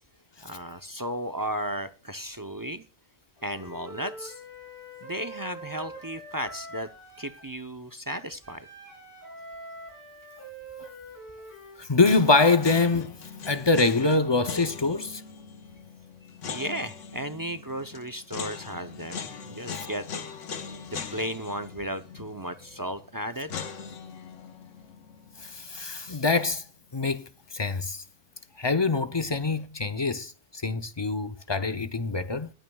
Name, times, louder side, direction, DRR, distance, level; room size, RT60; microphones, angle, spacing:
voice 1, 0.4-2.8 3.4-4.4 5.0-6.9 7.2-8.7 16.2-20.1 20.9-23.5, equal, 25° right, 0.5 m, -35 dB
Wind instrument woodwind instrument, 3.4-7.5 8.4-11.8, right 1 dB, 10° left, 7.0 m, -44 dB
voice 2, 11.8-13.2 13.5-15.2 25.4-26.6 26.9-27.2 27.5-28.0 28.6-32.5, left 3 dB, 30° left, 0.6 m, -24 dB
sound 1, 12.0-27.1 27.3-27.4 29.2-29.7, left 6 dB, 85° left, 1.3 m, -41 dB
20.5 x 9.0 x 2.3 m
omnidirectional pair, 1.2 m